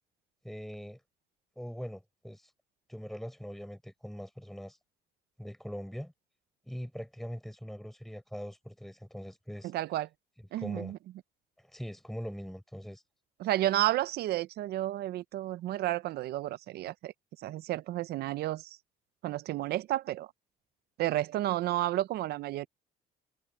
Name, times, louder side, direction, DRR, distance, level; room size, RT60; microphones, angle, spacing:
voice 1, 0.4-1.0 1.5-2.5 2.9-4.8 5.4-6.1 6.7-9.7 10.6-10.9 11.6-13.0, equal, ahead, 7.0 m, -42 dB
voice 2, 9.6-10.1 10.5-11.0 13.4-17.1 17.4-18.8 19.2-20.3 21.0-22.7, right 15 dB, 70° right, 0.7 m, -31 dB
cardioid pair, 110°, 17 cm